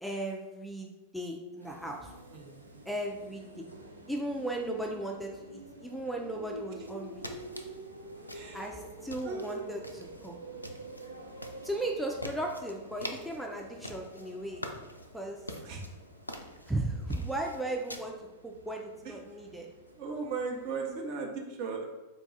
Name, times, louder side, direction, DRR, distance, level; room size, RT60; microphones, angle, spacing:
voice 1, 0.0-2.1 2.9-3.6 4.1-7.2 8.5-10.3 11.6-14.6 15.1-15.4 16.7-18.2 18.4-19.7, right 1 dB, ahead, -1 dB, 0.4 m, -36 dB
sound 1, 1.6-21.0, right 1 dB, 85° right, 0.4 m, -49 dB
sound 2, 6.8-18.0, left 1 dB, 85° left, 0.3 m, -46 dB
voice 2, 8.3-8.6 9.2-9.7 15.6-15.8 20.0-21.8, right 4 dB, 45° right, 1 dB, 0.7 m, -36 dB
4.0 x 2.3 x 3.8 m, 1.1 s
figure-of-eight pair, 90°, 0 cm